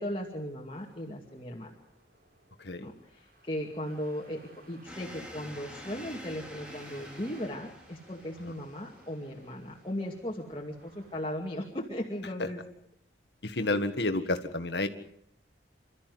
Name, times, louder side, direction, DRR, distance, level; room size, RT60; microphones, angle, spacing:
voice 1, 0.0-1.7 2.8-12.6, equal, 30° left, -1 dB, 2.3 m, -37 dB
sound 1, 0.7-11.9, right 2 dB, 55° right, 4.3 m, -59 dB
voice 2, 2.6-2.9 12.4-12.5 13.4-14.9, left 2 dB, 70° left, 8 dB, 1.8 m, -30 dB
sound 2, 4.8-11.3, equal, 5° right, 2.7 m, -49 dB
28.0 x 13.5 x 9.5 m, 0.75 s
head